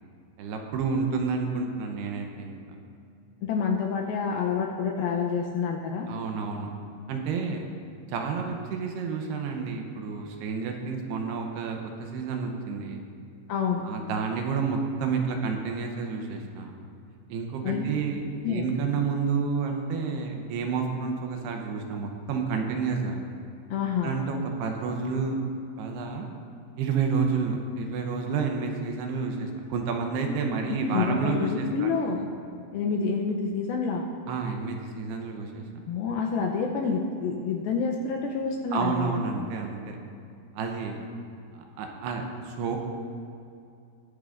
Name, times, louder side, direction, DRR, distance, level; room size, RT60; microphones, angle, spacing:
voice 1, 0.4-2.6 6.1-6.7 7.1-7.7 8.1-13.0 13.8-16.7 17.3-23.2 24.0-25.4 25.8-26.3 26.8-31.9 34.3-35.6 38.7-40.0 40.5-41.0 41.5-42.8, right 5 dB, 80° right, 3 dB, 2.8 m, -30 dB
voice 2, 3.4-6.1 13.5-13.8 17.6-17.8 18.4-18.7 23.7-24.1 30.8-32.3 32.7-34.1 35.9-39.1, left 5 dB, 80° left, 0 dB, 2.3 m, -28 dB
21.0 x 8.7 x 2.5 m, 2.5 s
omnidirectional pair, 4.9 m